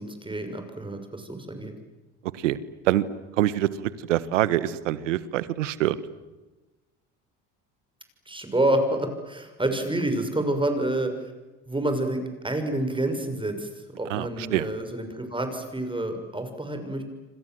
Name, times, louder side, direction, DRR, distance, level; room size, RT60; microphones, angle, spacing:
voice 1, 0.0-1.7 8.3-11.3 11.7-13.7 14.0-17.0, right 1 dB, 15° right, 7 dB, 6.4 m, -28 dB
voice 2, 3.4-6.0 14.1-14.7, right 14 dB, 90° right, 16 dB, 1.4 m, -25 dB
28.0 x 26.0 x 7.9 m, 1.1 s
hypercardioid pair, 70°, 37 cm